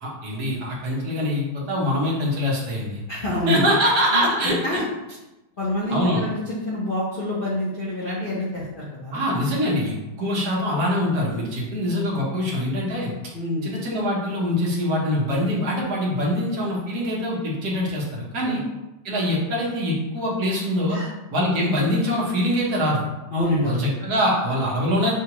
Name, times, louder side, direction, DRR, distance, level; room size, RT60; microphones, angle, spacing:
voice 1, 0.0-3.0 3.5-4.8 5.9-6.2 9.1-13.1 13.6-18.6 19.0-21.0 21.3-23.1 23.6-25.2, equal, 65° right, -4 dB, 1.6 m, -24 dB
voice 2, 3.1-4.2 4.6-4.8 5.6-9.2 13.3-13.7 18.5-18.6 20.9-21.1 23.3-23.9, left 1 dB, 50° left, -8 dB, 0.6 m, -27 dB
6.1 x 2.3 x 2.9 m, 1.0 s
omnidirectional pair, 1.9 m